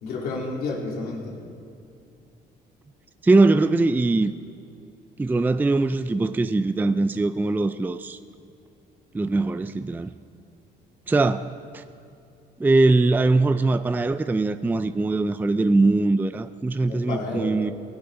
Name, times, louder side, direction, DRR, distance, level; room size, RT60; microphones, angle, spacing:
voice 1, 0.0-1.4 16.9-17.6, left 3 dB, 65° left, -2 dB, 3.4 m, -30 dB
voice 2, 3.2-4.3 5.2-8.2 9.1-10.1 11.1-11.8 12.6-17.7, right 2 dB, 10° right, 11 dB, 0.4 m, -21 dB
18.5 x 16.5 x 3.8 m, 2.5 s
cardioid pair, 110°, 17 cm